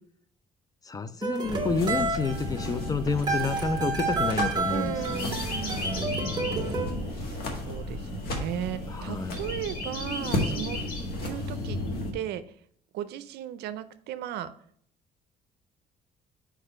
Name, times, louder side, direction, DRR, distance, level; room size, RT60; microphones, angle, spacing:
voice 1, 0.9-5.4 8.9-9.4, left 4 dB, 20° left, 13 dB, 0.5 m, -29 dB
sound 1, 1.2-6.9, right 3 dB, 25° right, 1.1 m, -31 dB
sound 2, 1.4-12.1, left 1 dB, 65° left, 1.6 m, -33 dB
voice 2, 4.7-6.3 7.1-10.8 11.2-11.8 12.1-12.6 12.9-14.5, right 11 dB, 80° right, 12 dB, 0.5 m, -36 dB
5.0 x 4.9 x 4.3 m, 0.63 s
cardioid pair, 110°, 17 cm